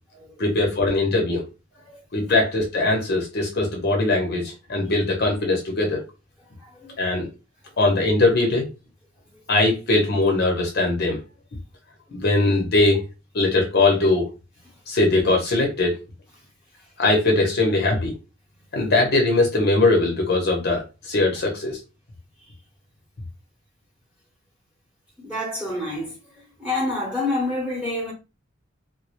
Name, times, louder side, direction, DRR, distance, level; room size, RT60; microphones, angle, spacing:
voice 1, 0.4-1.4 2.1-6.0 7.0-7.3 7.8-8.7 9.5-11.2 12.1-13.1 13.3-14.3 14.9-16.0 17.0-18.1 18.7-21.8, left 2 dB, 55° left, 0.6 m, -21 dB
voice 2, 6.6-7.0 12.1-12.2 25.2-26.1 26.6-28.1, left 2 dB, 5° right, 0.9 m, -28 dB
2.2 x 2.0 x 2.8 m
head